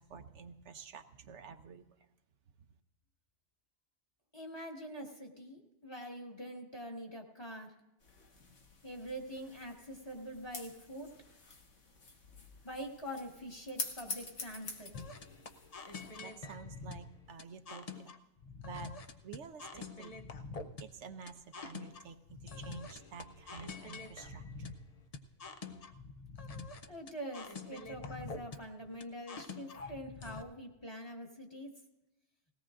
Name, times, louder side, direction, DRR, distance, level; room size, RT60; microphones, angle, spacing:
voice 1, 0.0-1.9 16.2-18.0 18.6-18.9 19.2-20.2 20.8-22.2 22.6-24.6, right 6 dB, 75° right, 8 dB, 1.0 m, -49 dB
voice 2, 4.3-7.7 8.8-11.1 12.6-14.9 26.9-31.7, equal, 20° left, 0 dB, 1.6 m, -45 dB
sound 1, 8.0-16.2, left 3 dB, 90° left, 1.8 m, -47 dB
sound 2, 14.9-30.4, left 4 dB, 40° left, 0.6 m, -46 dB
19.5 x 17.0 x 2.5 m, 0.98 s
omnidirectional pair, 1.2 m